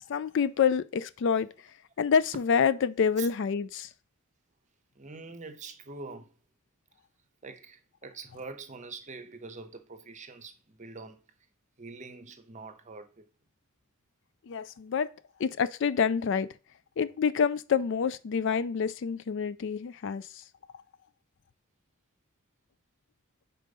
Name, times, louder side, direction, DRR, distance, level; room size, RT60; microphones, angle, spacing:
voice 1, 0.1-1.5 2.0-3.9 14.5-15.1 15.4-16.5 17.0-20.4, left 6 dB, 55° left, 0.3 m, -27 dB
voice 2, 4.9-6.4 7.4-11.3 11.8-13.3, right 4 dB, 35° right, 0.7 m, -44 dB
5.2 x 4.3 x 5.3 m
head